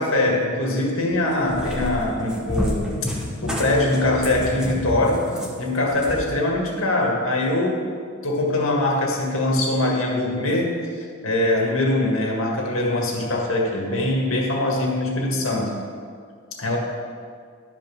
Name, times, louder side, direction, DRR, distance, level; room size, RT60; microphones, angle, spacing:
voice 1, 0.0-2.9 3.4-5.2 5.6-7.9 8.2-10.8 11.2-15.8 16.6-16.8, left 1 dB, 85° left, -1 dB, 1.8 m, -22 dB
Cat, 1.1-6.3, left 1 dB, 5° right, 1.0 m, -29 dB
12.0 x 5.3 x 5.4 m, 2.1 s
head